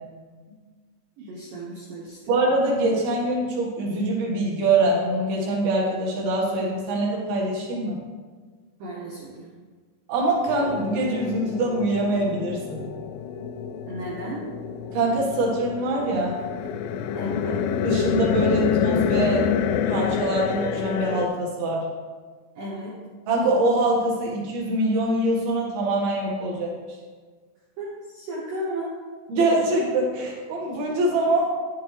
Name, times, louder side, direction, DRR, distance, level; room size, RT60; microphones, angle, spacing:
voice 1, 1.2-2.3 8.8-9.5 13.9-14.5 17.1-17.6 22.6-23.0 27.8-28.9, right 1 dB, 85° right, -4 dB, 1.9 m, -34 dB
voice 2, 2.3-8.0 10.1-12.8 14.9-16.4 17.8-19.5 19.9-21.8 23.3-26.7 29.3-31.5, right 2 dB, 60° right, -3 dB, 3.1 m, -24 dB
sound 1, 10.5-21.3, left 8 dB, 85° left, 2.9 m, -27 dB
10.5 x 7.7 x 3.3 m, 1.5 s
omnidirectional pair, 5.7 m